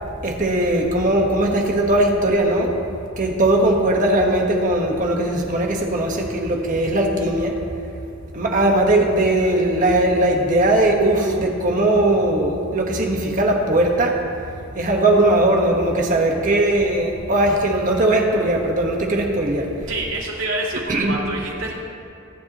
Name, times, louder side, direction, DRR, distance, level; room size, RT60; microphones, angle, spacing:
voice 1, 0.2-2.7 3.2-7.6 8.3-14.2 14.7-19.7 20.9-21.1, right 1 dB, 40° right, 1 dB, 1.4 m, -19 dB
voice 2, 19.9-21.7, right 2 dB, 75° right, -4 dB, 2.8 m, -27 dB
23.5 x 10.5 x 3.1 m, 2.5 s
head